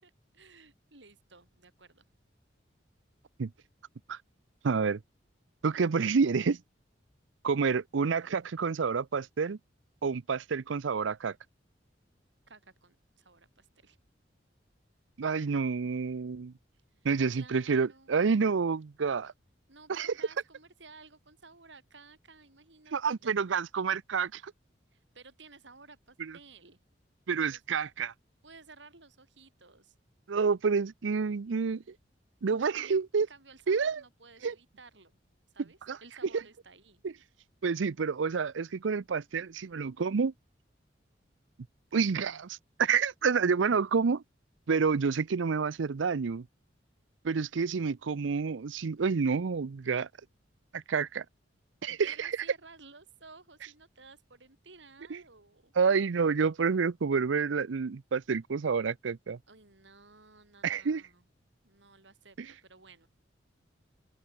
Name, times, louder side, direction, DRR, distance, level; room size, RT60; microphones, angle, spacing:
voice 1, 0.0-2.0 12.5-14.0 16.9-18.4 19.7-23.3 24.9-26.8 27.5-27.6 28.4-29.9 32.4-35.2 35.5-37.0 52.0-55.7 59.5-61.2 61.6-63.1, right 4 dB, 70° right, 4.7 m, -55 dB
voice 2, 4.6-5.0 5.6-6.6 7.4-9.6 10.0-11.3 15.2-16.5 17.0-19.3 19.9-20.1 22.9-24.5 26.2-26.3 27.3-28.1 30.3-31.8 32.4-33.3 33.7-34.0 34.4-34.5 35.9-36.0 36.3-36.4 37.0-37.1 37.6-40.3 41.9-44.2 44.7-46.5 47.2-50.1 50.7-51.2 51.8-52.3 55.1-55.2 55.8-59.4 60.6-61.0, right 5 dB, 90° right, 0.5 m, -28 dB
open air
head